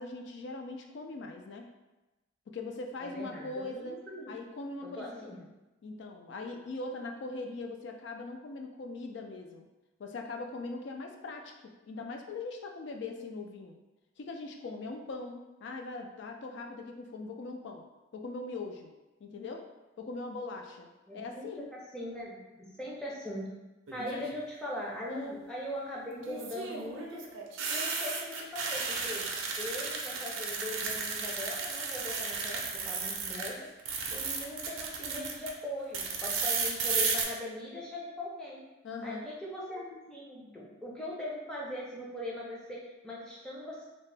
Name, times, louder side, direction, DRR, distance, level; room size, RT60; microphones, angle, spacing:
voice 1, 0.0-1.7 2.5-5.4 5.8-9.6 10.0-13.8 14.2-17.8 18.1-18.9 19.2-19.7 20.0-20.9 21.1-21.7 24.0-24.3 25.1-25.4 38.8-39.3, left 3 dB, 60° left, 3 dB, 0.3 m, -41 dB
voice 2, 3.0-4.4 4.8-5.4 21.1-23.5 23.9-27.3 27.7-29.3 29.6-33.7 34.1-38.6 39.0-43.8, left 1 dB, 5° left, -6 dB, 0.5 m, -40 dB
sound 1, 23.9-24.4 26.2-33.5 33.8-35.5 35.9-37.2, right 5 dB, 75° right, 0.4 m, -34 dB
2.8 x 2.1 x 3.2 m, 1.1 s
head